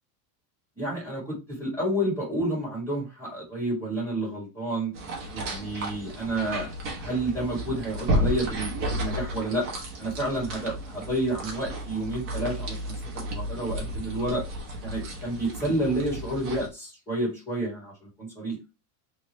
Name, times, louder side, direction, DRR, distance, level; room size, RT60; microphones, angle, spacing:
voice 1, 0.8-4.9 5.3-6.7 7.0-9.7 10.0-14.4 14.8-18.6, right 1 dB, 5° left, -6 dB, 2.3 m, -30 dB
sound 1, 4.9-16.7, equal, 25° right, 1.0 m, -33 dB
3.4 x 3.2 x 3.0 m, 0.26 s
supercardioid pair, 170°, 47 cm